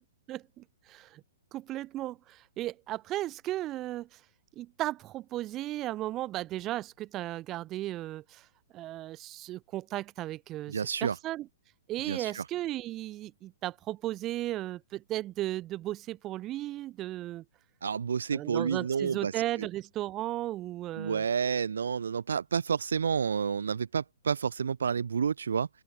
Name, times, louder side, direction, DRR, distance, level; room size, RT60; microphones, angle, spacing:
voice 1, 0.3-1.2 1.5-4.2 4.6-8.5 8.7-11.5 11.9-17.4 18.3-21.2, right 15 dB, 25° right, 1.1 m, -35 dB
voice 2, 10.7-11.2 12.1-12.4 17.8-19.3 19.6-19.7 21.0-25.7, right 6 dB, 65° right, 0.3 m, -30 dB
open air
figure-of-eight pair, 115°, 0 cm